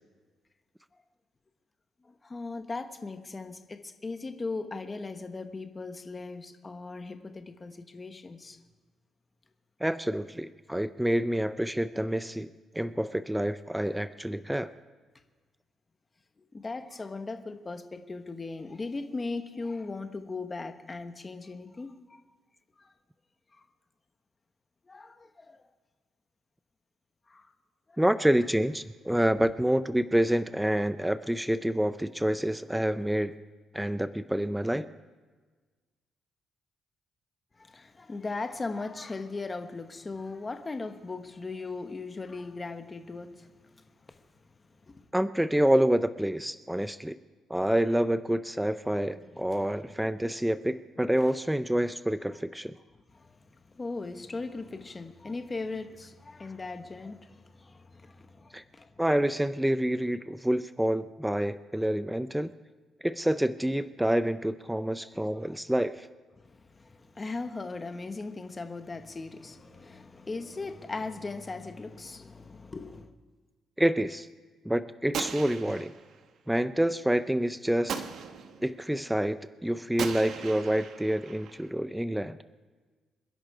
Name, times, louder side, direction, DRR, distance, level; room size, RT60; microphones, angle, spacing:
voice 1, 2.0-8.6 10.1-10.2 16.5-22.2 22.8-22.9 24.9-25.6 27.3-27.5 27.9-28.0 29.4-29.5 37.6-43.8 44.9-45.0 48.9-49.0 49.5-49.7 53.1-58.9 65.4-65.6 66.4-73.1, left 3 dB, 20° left, 7 dB, 1.1 m, -38 dB
voice 2, 9.8-12.5 12.7-14.7 28.0-33.3 33.7-34.9 45.1-47.2 47.5-52.8 58.5-58.6 59.0-62.5 63.0-66.1 73.8-74.3 74.6-75.9 76.5-77.9 78.6-82.4, right 1 dB, 5° right, 12 dB, 0.4 m, -27 dB
Gunshot gunfire, 75.1-76.2 77.9-78.7 80.0-81.7, right 6 dB, 60° right, 1.1 m, -38 dB
27.0 x 11.0 x 4.8 m, 1.4 s
cardioid pair, 150°, 0 cm